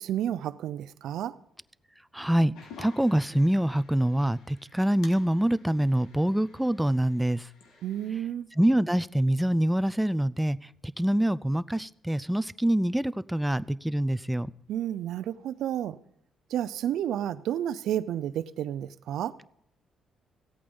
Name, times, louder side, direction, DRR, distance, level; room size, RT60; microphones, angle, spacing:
voice 1, 0.0-1.4 7.8-8.5 14.7-16.0 16.5-19.4, right 11 dB, 80° right, 0.5 m, -31 dB
voice 2, 2.1-7.5 8.6-10.6 10.8-14.5, right 1 dB, 5° right, 0.4 m, -25 dB
sound 1, 2.5-8.1, left 5 dB, 85° left, 1.8 m, -52 dB
15.5 x 8.6 x 5.4 m
cardioid pair, 90°, 0 cm